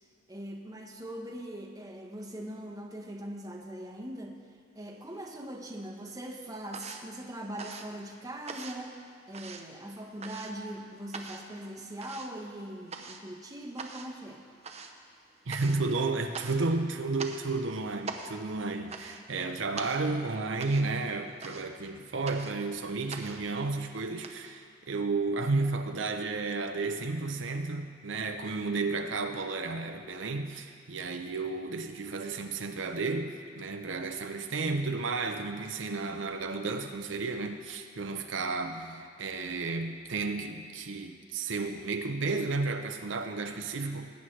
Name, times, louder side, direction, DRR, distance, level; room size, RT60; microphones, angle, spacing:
voice 1, 0.3-4.4 4.7-8.9 9.3-14.4, right 1 dB, 20° right, 1 dB, 1.0 m, -41 dB
sound 1, 4.9-5.7 6.0-24.3, right 4 dB, 35° right, 0.8 m, -44 dB
voice 2, 15.5-44.1, right 3 dB, 75° right, 5 dB, 0.7 m, -32 dB
20.0 x 9.4 x 3.3 m, 2.2 s
head